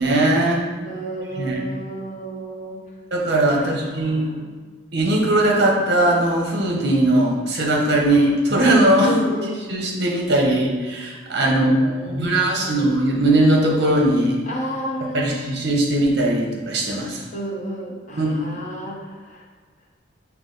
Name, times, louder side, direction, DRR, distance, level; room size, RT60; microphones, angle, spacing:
voice 1, 0.0-0.6 1.4-1.6 3.1-4.3 4.9-9.1 9.7-14.4 15.1-17.2 18.2-18.4, right 1 dB, 55° right, -1 dB, 0.9 m, -19 dB
voice 2, 0.8-2.8 3.5-4.5 9.0-9.5 11.5-12.9 14.5-15.4 17.3-19.4, equal, 40° left, -3 dB, 0.8 m, -32 dB
5.6 x 2.2 x 3.9 m, 1.4 s
head